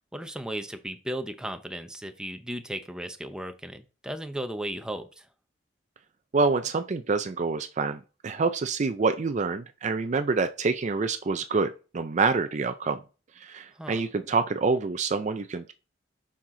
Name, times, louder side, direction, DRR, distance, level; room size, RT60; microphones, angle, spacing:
voice 1, 0.1-5.3 13.8-14.0, right 1 dB, 5° right, 0.7 m, -35 dB
voice 2, 6.3-13.0 13.4-15.7, right 4 dB, 40° right, 0.4 m, -27 dB
7.3 x 5.7 x 3.8 m
head